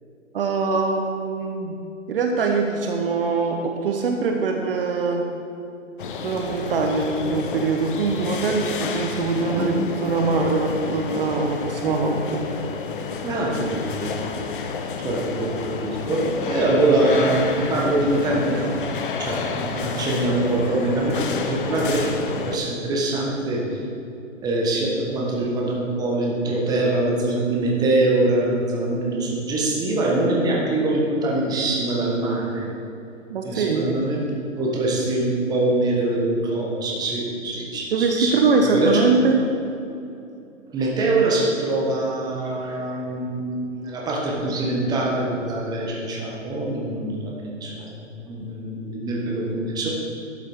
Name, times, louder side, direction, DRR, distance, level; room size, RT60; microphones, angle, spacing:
voice 1, 0.3-1.8 2.1-5.3 6.2-12.5 33.3-34.0 37.9-39.4, right 4 dB, 45° right, 2 dB, 0.9 m, -23 dB
sound 1, 6.0-22.6, left 5 dB, 40° left, 0.8 m, -30 dB
voice 2, 13.2-14.1 15.0-18.7 19.2-23.8 24.4-32.7 33.4-34.2 34.6-39.0 40.7-49.9, right 2 dB, 10° right, -3 dB, 1.2 m, -24 dB
11.5 x 7.4 x 3.5 m, 2.7 s
figure-of-eight pair, 135°, 39 cm